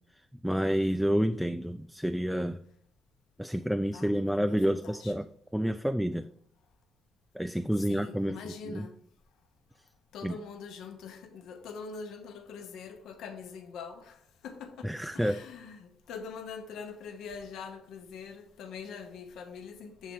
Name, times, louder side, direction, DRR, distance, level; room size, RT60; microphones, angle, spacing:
voice 1, 0.1-2.6 3.4-5.3 5.5-6.3 7.3-8.4 8.7-8.9 10.2-10.4 14.8-15.4, equal, ahead, 0.3 m, -29 dB
voice 2, 3.9-5.1 7.8-8.9 10.1-20.1, left 5 dB, 80° left, 0.8 m, -44 dB
7.4 x 3.2 x 5.2 m
cardioid pair, 90°, 0 cm